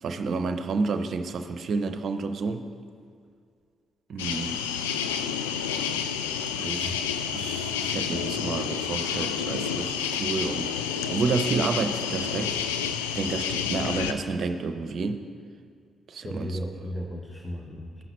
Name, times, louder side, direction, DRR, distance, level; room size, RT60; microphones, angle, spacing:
voice 1, 0.0-2.7 4.1-4.6 6.6-7.0 7.3-12.6 13.1-15.2 16.1-16.5, right 4 dB, 60° right, 8 dB, 0.6 m, -30 dB
sound 1, 4.2-14.1, left 7 dB, 90° left, 0.3 m, -29 dB
voice 2, 6.6-7.0 16.2-18.1, equal, 25° left, 0 dB, 1.0 m, -36 dB
14.5 x 5.7 x 3.1 m, 2.2 s
hypercardioid pair, 45°, 0 cm